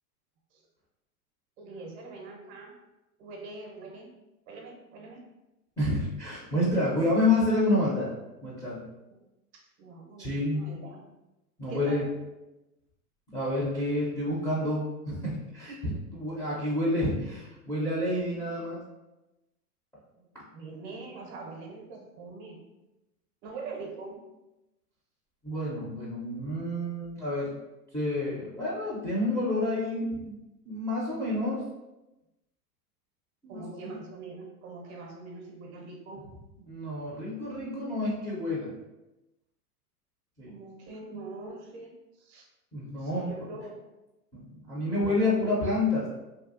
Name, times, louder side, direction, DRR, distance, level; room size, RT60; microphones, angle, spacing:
voice 1, 1.6-2.7 3.2-4.1 4.5-5.2 9.1-9.2 9.5-11.0 11.7-12.0 20.1-20.3 20.5-22.6 23.4-24.2 33.5-36.3 40.5-42.5 43.0-43.8 45.0-45.6, right 3 dB, 45° right, 1 dB, 0.6 m, -43 dB
voice 2, 5.8-8.1 8.4-8.8 10.2-10.8 11.6-12.1 13.3-18.8 25.4-27.5 27.9-30.4 30.6-31.6 33.4-33.6 36.6-38.7 40.4-40.5 42.7-43.5 44.3-46.1, left 1 dB, 5° left, -9 dB, 0.5 m, -29 dB
2.8 x 2.3 x 2.5 m, 0.99 s
hypercardioid pair, 115°, 47 cm